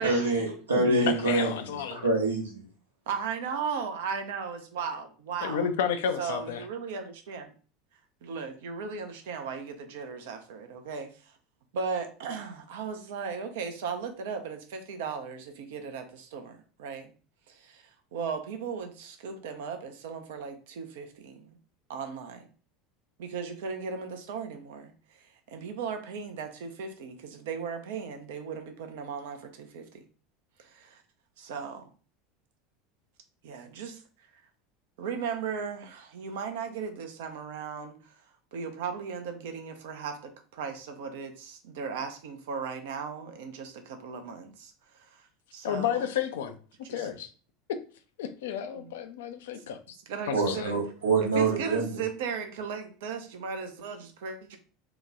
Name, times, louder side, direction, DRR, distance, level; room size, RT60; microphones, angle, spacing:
voice 1, 0.0-1.5 1.9-2.6 50.3-51.9, right 3 dB, 85° right, 0 dB, 1.0 m, -26 dB
voice 2, 0.8-2.1 5.4-6.6 45.6-46.6 46.9-47.3 47.7-47.8 48.2-50.0 50.3-50.7, left 8 dB, 70° left, 8 dB, 0.4 m, -31 dB
voice 3, 3.1-5.7 6.2-7.5 8.2-11.1 11.7-17.1 17.5-17.8 18.1-21.6 21.9-22.5 23.2-24.9 25.2-30.0 30.6-31.0 31.4-31.9 33.4-34.0 35.0-38.0 38.5-45.3 45.5-46.0 46.9-47.1 48.8-48.9 50.1-50.8 51.2-54.6, right 6 dB, 70° right, 6 dB, 0.6 m, -36 dB
2.9 x 2.2 x 3.7 m, 0.39 s
hypercardioid pair, 75°, 0 cm